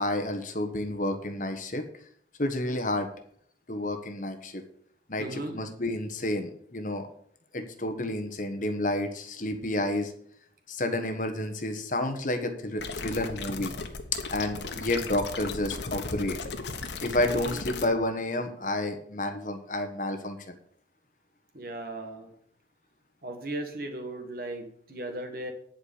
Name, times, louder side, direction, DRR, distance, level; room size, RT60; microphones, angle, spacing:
voice 1, 0.0-1.8 2.4-3.1 3.7-4.6 5.1-7.1 7.5-10.1 10.7-13.7 14.3-16.4 17.0-20.5, left 1 dB, 45° left, 6 dB, 1.3 m, -30 dB
voice 2, 5.2-5.6 17.4-17.6 21.5-22.3 23.2-25.5, right 1 dB, 55° right, 6 dB, 1.6 m, -37 dB
sound 1, 12.8-17.9, left 4 dB, 80° left, 1.2 m, -36 dB
10.5 x 5.1 x 8.3 m, 0.63 s
head